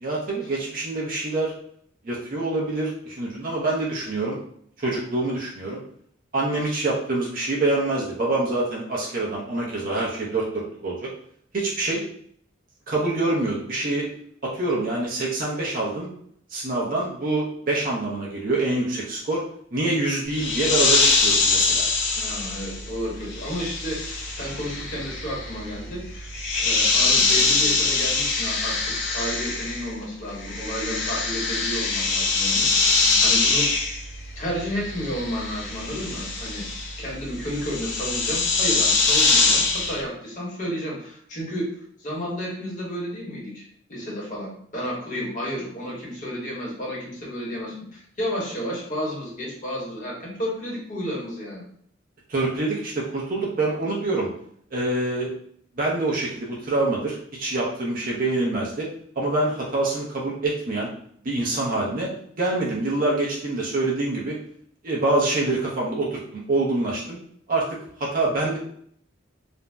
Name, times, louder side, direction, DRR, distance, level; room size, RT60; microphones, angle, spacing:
voice 1, 0.0-1.5 2.0-4.4 4.8-5.8 6.3-11.1 11.5-12.0 12.9-14.1 14.4-16.1 16.5-19.4 19.7-21.8 52.3-54.3 54.7-55.3 55.8-58.9 59.2-60.9 61.2-62.1 62.4-64.4 64.8-67.2 67.5-67.7 68.0-68.6, right 2 dB, 45° right, -4 dB, 0.6 m, -25 dB
sound 1, 20.3-30.0 30.3-40.0, left 3 dB, 65° left, 0.6 m, -23 dB
voice 2, 22.1-33.7 34.4-36.7 37.0-41.7 42.0-51.6, equal, 40° left, -4 dB, 0.9 m, -32 dB
2.5 x 2.0 x 3.3 m, 0.64 s
head